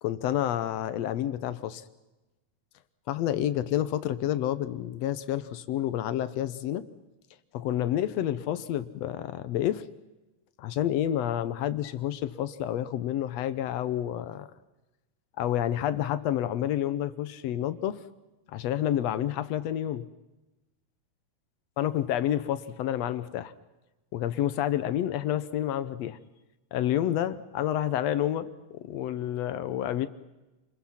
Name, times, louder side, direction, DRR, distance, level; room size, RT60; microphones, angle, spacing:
voice 1, 0.0-1.8 3.1-6.9 7.5-9.8 10.6-14.5 15.4-18.0 18.5-20.0 21.8-23.5 24.1-26.2 26.7-28.5 28.7-30.1, left 11 dB, 70° left, 14 dB, 1.8 m, -29 dB
29.0 x 22.0 x 5.8 m, 1.1 s
omnidirectional pair, 3.6 m